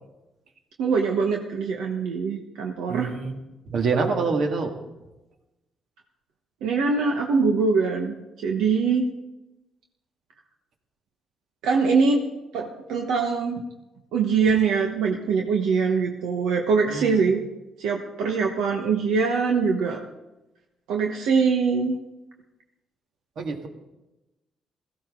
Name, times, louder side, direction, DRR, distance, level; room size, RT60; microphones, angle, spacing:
voice 1, 0.8-3.1 6.6-9.1 11.6-12.2 12.5-13.6 14.1-17.4 17.8-20.0 20.9-22.0, right 5 dB, 90° right, 2 dB, 1.2 m, -23 dB
voice 2, 2.9-3.4 3.7-4.7 16.9-17.3 23.4-23.7, right 4 dB, 65° right, 3 dB, 2.1 m, -26 dB
16.5 x 15.5 x 3.8 m, 1.0 s
cardioid pair, 90°, 0 cm